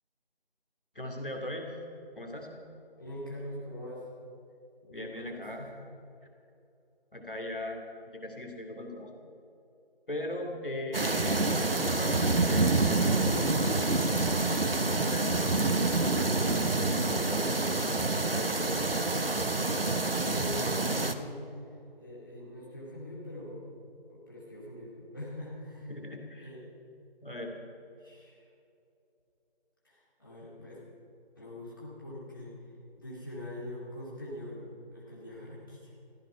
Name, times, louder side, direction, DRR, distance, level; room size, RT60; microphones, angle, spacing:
voice 1, 0.9-1.7 2.2-2.5 4.9-5.6 7.1-9.1 10.1-14.0 14.8-18.5 25.9-26.5 27.2-27.5, left 1 dB, 60° left, 1 dB, 2.6 m, -39 dB
voice 2, 3.0-4.0 4.8-5.7 20.2-21.4 22.0-23.6 24.1-25.9 26.4-26.6 28.0-28.4 29.8-30.8 31.4-32.5 33.0-36.0, left 1 dB, 20° left, -7 dB, 2.4 m, -43 dB
sound 1, 10.9-21.1, right 2 dB, 65° right, 1.0 m, -27 dB
14.5 x 14.5 x 5.7 m, 2.7 s
figure-of-eight pair, 170°, 31 cm